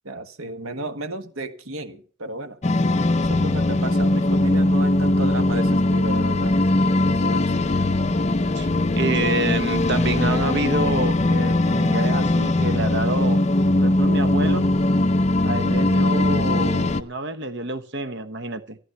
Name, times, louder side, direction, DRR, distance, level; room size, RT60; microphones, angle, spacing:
voice 1, 0.0-2.6 3.2-6.6 7.0-7.5, right 2 dB, 85° right, 1.6 m, -33 dB
sound 1, 2.6-17.0, left 2 dB, 30° left, 0.6 m, -20 dB
voice 2, 8.9-13.4 13.8-14.7 15.4-18.8, right 2 dB, 55° right, 1.2 m, -27 dB
14.5 x 11.0 x 5.9 m
head